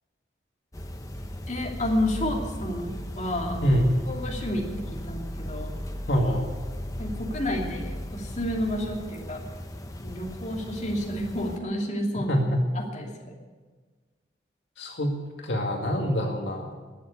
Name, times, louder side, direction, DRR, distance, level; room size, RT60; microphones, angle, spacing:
sound 1, 0.7-11.6, equal, 20° left, 1.0 m, -36 dB
voice 1, 1.5-3.8 4.1-5.8 7.0-9.4 10.0-12.3 12.7-13.1, left 1 dB, 40° left, -1 dB, 2.7 m, -30 dB
voice 2, 6.1-6.5 12.3-12.6 14.8-15.1 15.4-16.7, equal, 75° left, 1 dB, 2.1 m, -25 dB
21.0 x 7.4 x 8.3 m, 1.4 s
head